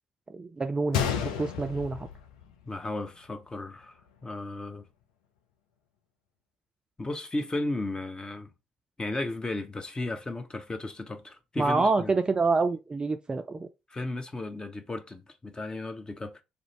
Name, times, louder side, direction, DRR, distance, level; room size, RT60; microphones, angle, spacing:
voice 1, 0.3-1.0 1.4-2.1 11.6-13.7, right 3 dB, 20° right, 0.3 m, -27 dB
Gunshot gunfire, 0.9-3.0 3.2-3.3 4.0-4.2, left 8 dB, 70° left, 0.4 m, -32 dB
voice 2, 2.7-4.9 7.0-8.5 9.0-12.1 13.9-16.4, left 2 dB, 20° left, 0.6 m, -34 dB
2.5 x 2.1 x 3.0 m
figure-of-eight pair, 45°, 4 cm